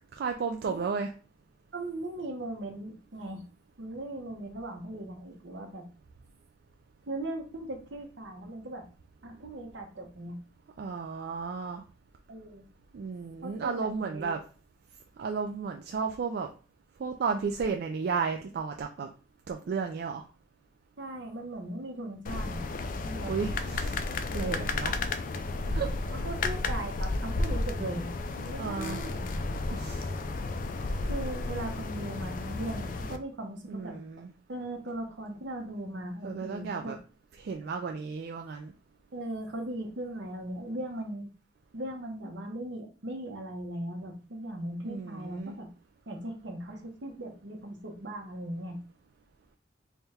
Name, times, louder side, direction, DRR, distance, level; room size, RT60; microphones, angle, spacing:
voice 1, 0.1-1.1 10.8-11.8 12.9-14.4 15.2-16.5 17.0-19.1 19.5-20.3 23.3-25.0 25.7-25.9 28.6-29.0 29.7-30.1 33.7-34.3 36.2-37.0 37.4-38.7 44.8-45.6, right 5 dB, 60° right, 4 dB, 0.3 m, -33 dB
voice 2, 1.7-3.5 3.8-5.9 7.1-8.8 9.2-10.4 12.3-12.6 13.4-14.5 21.0-22.7 23.0-23.3 26.1-29.3 31.0-33.9 34.5-37.0 39.1-41.3 41.7-45.7 46.1-48.8, right 1 dB, 80° right, 3 dB, 0.9 m, -38 dB
sound 1, 22.3-33.2, left 2 dB, 50° left, 0.3 m, -32 dB
3.5 x 2.2 x 4.2 m, 0.37 s
head